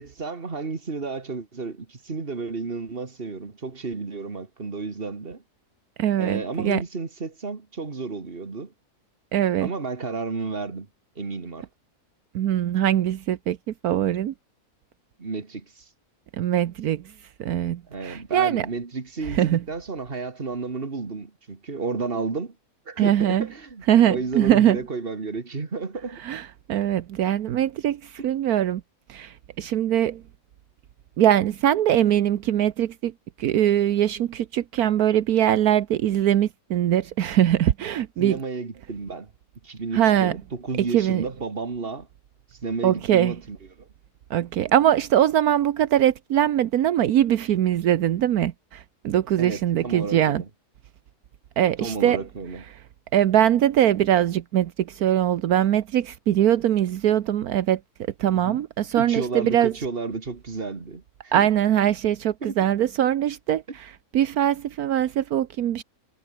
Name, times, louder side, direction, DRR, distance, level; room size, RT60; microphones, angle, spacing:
voice 1, 0.0-5.4 6.2-8.7 9.6-10.9 11.2-11.7 15.2-15.8 17.9-22.5 22.9-26.2 28.2-28.3 38.2-39.3 39.6-42.1 42.6-43.9 49.4-50.5 51.8-52.6 58.3-58.6 58.9-61.5 62.4-62.6 63.7-63.8, right 4 dB, 40° right, 2.3 m, -32 dB
voice 2, 6.0-6.8 9.3-9.7 12.3-13.6 13.8-14.3 16.4-17.0 17.4-18.7 19.3-19.6 23.0-23.5 23.9-24.8 26.2-28.8 29.1-30.2 31.2-33.1 33.4-38.4 39.9-40.3 40.9-41.2 42.8-43.3 44.3-50.4 51.6-52.2 53.1-57.8 58.2-59.7 61.3-65.8, right 11 dB, 75° right, 1.3 m, -22 dB
omnidirectional pair, 1.6 m